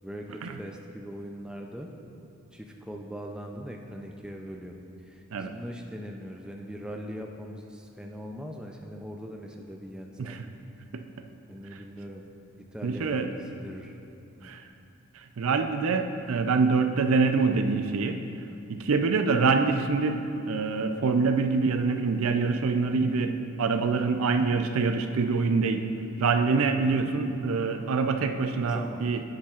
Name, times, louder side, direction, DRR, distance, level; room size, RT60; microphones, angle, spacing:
voice 1, 0.0-1.9 2.5-10.4 11.5-12.3 12.5-14.0 14.4-14.5 28.6-29.0, equal, 5° right, 1 dB, 0.4 m, -41 dB
voice 2, 12.8-13.3 14.4-14.7 15.1-18.2 18.7-25.9 26.2-29.2, right 4 dB, 70° right, 7 dB, 0.5 m, -25 dB
9.9 x 8.8 x 2.4 m, 2.7 s
head